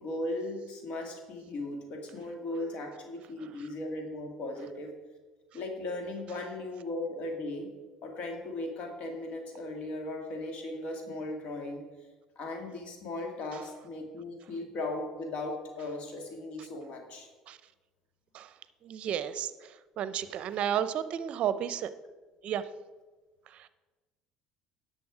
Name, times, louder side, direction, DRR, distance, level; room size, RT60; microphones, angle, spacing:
voice 1, 0.0-4.9 5.5-7.7 8.0-11.8 12.4-17.3, left 2 dB, 60° left, 3 dB, 2.0 m, -37 dB
voice 2, 18.8-19.5 20.0-21.9 22.4-22.6, right 9 dB, 55° right, 14 dB, 0.6 m, -32 dB
10.5 x 6.7 x 4.9 m, 1.3 s
hypercardioid pair, 70°, 2 cm